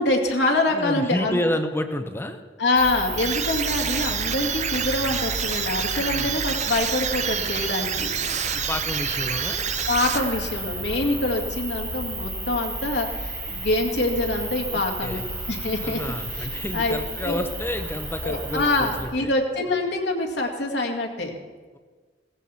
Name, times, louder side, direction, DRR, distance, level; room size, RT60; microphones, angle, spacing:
voice 1, 0.0-1.5 2.6-8.1 9.9-16.0 16.4-16.5 16.7-17.4 18.2-21.3, left 2 dB, 70° left, 2 dB, 2.1 m, -25 dB
voice 2, 0.7-2.4 6.1-6.4 8.5-9.7 14.7-15.2 15.8-19.3, left 1 dB, 15° left, 6 dB, 0.8 m, -30 dB
sound 1, 2.7-19.0, right 2 dB, 15° right, 4.7 m, -32 dB
sound 2, 3.2-10.7, right 8 dB, 40° right, 0.7 m, -28 dB
17.0 x 15.0 x 4.3 m, 1.5 s
head